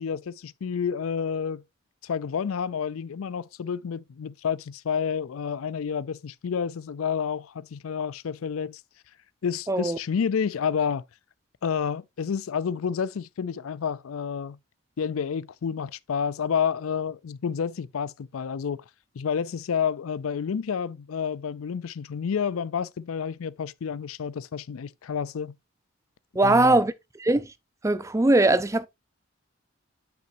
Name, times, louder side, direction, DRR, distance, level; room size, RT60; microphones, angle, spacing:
voice 1, 0.0-1.6 2.0-8.8 9.4-11.0 11.6-14.6 15.0-18.8 19.2-25.6 26.4-26.8, left 7 dB, 85° left, 0.4 m, -29 dB
voice 2, 9.7-10.0 26.3-26.9 27.2-27.5 27.8-28.9, right 2 dB, 15° right, 0.4 m, -20 dB
8.6 x 6.1 x 2.6 m
head